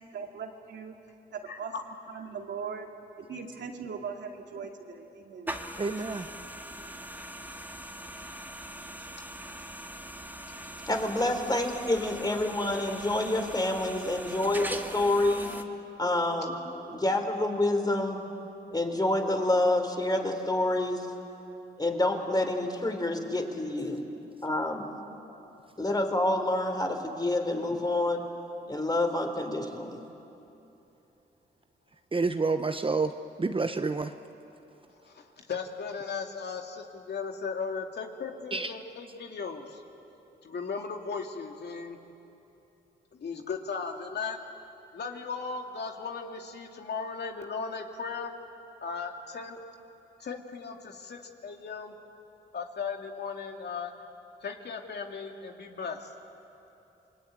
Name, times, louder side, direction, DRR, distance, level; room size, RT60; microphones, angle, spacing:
voice 1, 0.1-1.0 1.3-1.7 2.1-2.9 3.2-5.5, right 6 dB, 75° right, 2 dB, 2.5 m, -39 dB
voice 2, 1.5-1.8 11.2-11.3 35.0-39.8 40.4-42.0 43.1-44.4 44.9-48.3 48.8-49.6 50.2-51.9 52.5-54.0 54.4-56.1, left 5 dB, 65° left, 3 dB, 2.5 m, -37 dB
sound 1, 5.5-15.6, right 1 dB, 10° right, 2.0 m, -41 dB
voice 3, 5.8-6.2 32.1-33.1 33.4-34.1 38.5-38.7, right 3 dB, 30° right, 8 dB, 1.0 m, -28 dB
voice 4, 10.9-15.5 16.0-16.6 16.9-18.2 18.7-21.1 21.8-24.0 24.4-24.9 25.8-28.2 28.7-30.0, left 1 dB, 20° left, 5 dB, 3.9 m, -28 dB
28.0 x 21.0 x 9.4 m, 3.0 s
cardioid pair, 65°, 19 cm